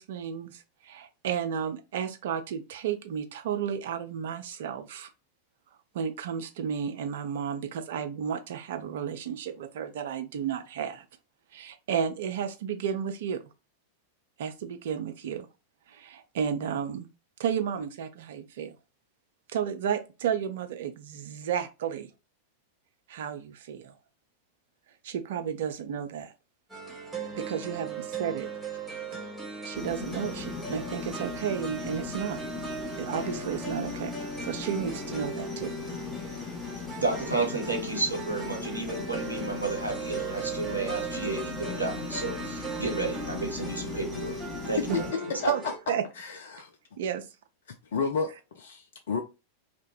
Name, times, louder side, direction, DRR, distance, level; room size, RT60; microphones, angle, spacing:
voice 1, 0.0-5.1 5.9-11.0 11.5-13.4 14.4-15.5 15.9-17.1 17.4-18.8 19.5-22.1 23.1-23.9 25.0-26.3 27.4-28.5 29.6-32.4 33.0-35.8 44.9-45.0 45.5-45.6 45.9-46.0 47.0-47.2, right 8 dB, 55° right, 0.4 m, -32 dB
sound 1, 26.7-45.8, right 4 dB, 10° right, 1.2 m, -38 dB
sound 2, 29.7-45.1, left 6 dB, 10° left, 1.0 m, -39 dB
voice 2, 37.0-44.3 44.7-45.0, right 3 dB, 85° right, 0.9 m, -31 dB
voice 3, 46.2-46.7 47.7-49.2, left 5 dB, 60° left, 0.3 m, -31 dB
2.7 x 2.1 x 3.0 m
figure-of-eight pair, 90°, 0 cm